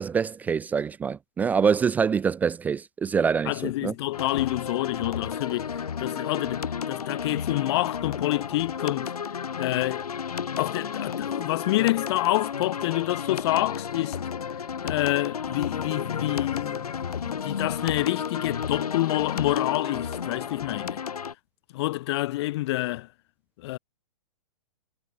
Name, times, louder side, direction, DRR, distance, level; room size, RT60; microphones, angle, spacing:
voice 1, 0.0-3.9, right 6 dB, 10° right, 0.4 m, -25 dB
voice 2, 3.5-5.7 6.0-9.1 9.6-10.1 10.6-14.2 14.8-21.0 21.7-23.1 23.6-23.8, left 17 dB, 45° left, 2.3 m, -27 dB
sound 1, 4.1-21.3, left 7 dB, 90° left, 3.2 m, -32 dB
hypercardioid pair, 145°, 19 cm